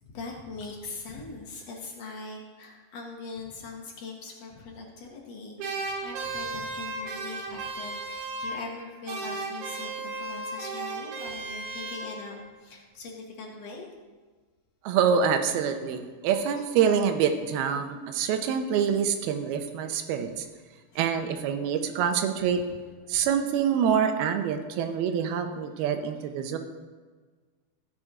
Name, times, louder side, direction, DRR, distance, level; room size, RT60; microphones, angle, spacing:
voice 1, 0.0-13.9 20.9-21.1, left 3 dB, 60° left, 0 dB, 1.8 m, -41 dB
sound 1, 5.6-8.8 9.1-12.5, right 3 dB, 60° right, 2.7 m, -35 dB
voice 2, 14.8-20.5 21.0-22.6 23.1-26.6, right 7 dB, 80° right, 7 dB, 2.8 m, -26 dB
15.0 x 6.0 x 4.9 m, 1.4 s
omnidirectional pair, 4.4 m